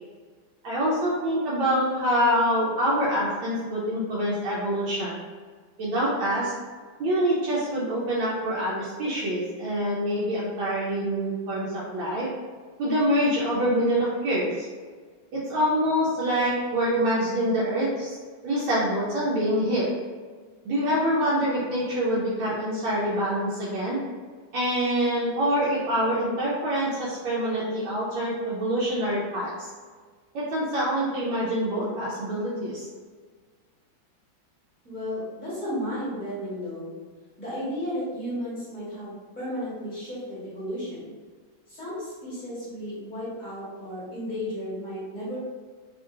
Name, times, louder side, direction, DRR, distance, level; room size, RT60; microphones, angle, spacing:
voice 1, 0.6-5.2 5.8-6.6 7.0-12.3 12.8-14.7 15.3-18.2 18.4-19.9 20.6-24.0 24.5-29.7 30.3-32.9, equal, 80° right, -7 dB, 1.4 m, -25 dB
voice 2, 34.8-36.9 37.4-41.1 41.7-45.4, equal, 25° left, -10 dB, 1.4 m, -34 dB
3.5 x 2.6 x 2.5 m, 1.5 s
omnidirectional pair, 2.1 m